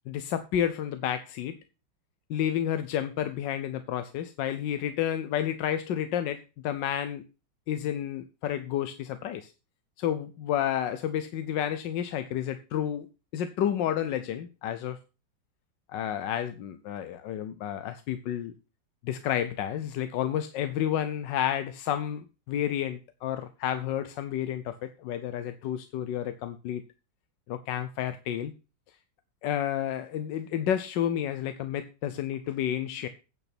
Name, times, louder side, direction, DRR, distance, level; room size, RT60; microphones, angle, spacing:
voice 1, 0.1-1.6 2.3-7.2 7.7-9.5 10.0-13.1 13.3-15.0 15.9-18.5 19.0-26.8 27.5-28.5 29.4-33.1, left 10 dB, 85° left, 10 dB, 1.4 m, -30 dB
9.3 x 5.7 x 6.0 m, 0.31 s
omnidirectional pair, 1.9 m